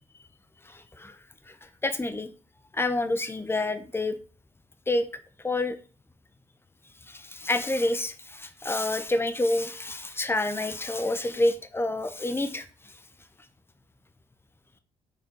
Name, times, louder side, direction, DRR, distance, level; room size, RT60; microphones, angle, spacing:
voice 1, 0.6-1.2 1.5-2.3 2.7-4.2 4.9-5.1 5.4-5.8 7.1-12.9, left 2 dB, 15° left, 10 dB, 1.0 m, -28 dB
7.0 x 4.3 x 4.6 m, 0.39 s
supercardioid pair, 65°, 14 cm